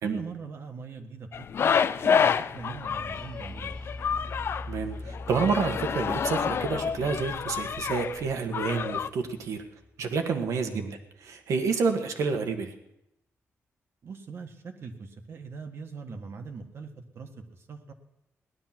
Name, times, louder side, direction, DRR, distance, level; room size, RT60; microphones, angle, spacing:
voice 1, 0.0-3.8 10.6-11.0 14.0-17.9, right 5 dB, 55° right, 5 dB, 1.5 m, -41 dB
sound 1, 1.3-9.1, left 7 dB, 50° left, 0.4 m, -28 dB
sound 2, 2.5-10.2, left 2 dB, 10° left, 1.6 m, -43 dB
voice 2, 4.7-9.6 10.0-10.8 11.5-12.7, right 5 dB, 80° right, 6 dB, 1.7 m, -29 dB
18.0 x 11.5 x 6.0 m, 0.86 s
wide cardioid pair, 135°, 5 cm